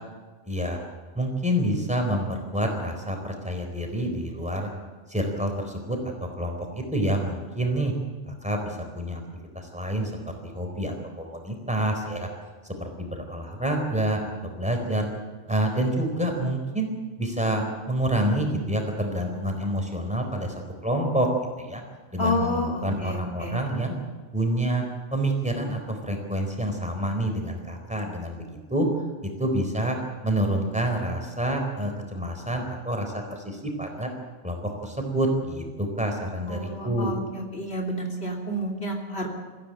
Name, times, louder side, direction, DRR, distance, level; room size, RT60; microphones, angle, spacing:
voice 1, 0.5-0.8 1.2-4.7 5.1-7.9 8.3-9.2 9.5-12.3 12.6-15.1 15.5-16.9 17.2-21.3 21.6-21.8 22.1-24.0 24.3-24.8 25.1-28.9 29.4-30.0 30.2-34.1 34.4-37.2, right 1 dB, 5° right, 3 dB, 4.1 m, -28 dB
voice 2, 22.2-23.6 36.5-39.3, equal, 60° left, 1 dB, 3.5 m, -30 dB
21.5 x 15.5 x 9.0 m, 1.3 s
omnidirectional pair, 1.2 m